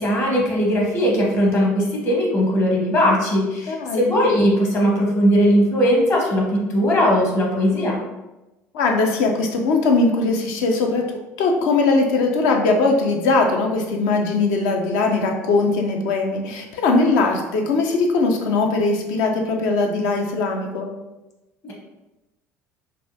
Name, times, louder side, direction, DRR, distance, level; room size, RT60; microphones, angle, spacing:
voice 1, 0.0-8.0 21.6-21.8, equal, 35° left, -3 dB, 1.0 m, -19 dB
voice 2, 3.7-4.1 8.7-11.1 11.4-20.9, left 3 dB, 55° left, 2 dB, 0.5 m, -20 dB
3.3 x 2.5 x 2.6 m, 1.0 s
figure-of-eight pair, 60°, 8 cm